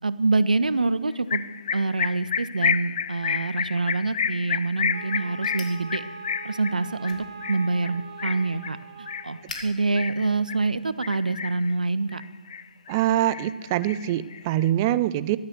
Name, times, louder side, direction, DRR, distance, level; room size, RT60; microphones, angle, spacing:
voice 1, 0.0-1.4 1.7-6.0 6.4-12.2, right 3 dB, 70° right, 15 dB, 0.8 m, -26 dB
sound 1, 1.3-10.6 11.0-11.7 12.1-13.0 13.3-14.6, left 7 dB, 45° left, 0.4 m, -30 dB
Wind instrument woodwind instrument, 4.9-9.5, right 5 dB, 40° right, 1.5 m, -42 dB
sound 2, 5.4-11.2, left 2 dB, 65° left, 2.8 m, -48 dB
voice 2, 12.9-15.4, right 13 dB, 25° right, 17 dB, 0.5 m, -24 dB
14.5 x 12.0 x 6.6 m, 1.3 s
figure-of-eight pair, 140°, 5 cm